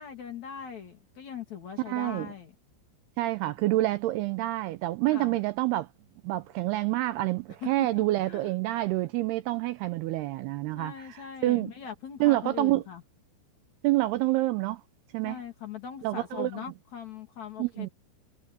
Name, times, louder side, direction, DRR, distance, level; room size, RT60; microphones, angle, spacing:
voice 1, 0.0-2.5 5.1-5.4 7.6-8.5 10.8-13.0 15.2-17.9, left 8 dB, 45° left, 3.6 m, -41 dB
voice 2, 1.9-2.3 3.2-5.9 6.2-11.7 12.2-12.8 13.8-14.8 15.1-15.4 16.0-16.6 17.6-17.9, right 17 dB, 85° right, 2.4 m, -27 dB
omnidirectional pair, 5.2 m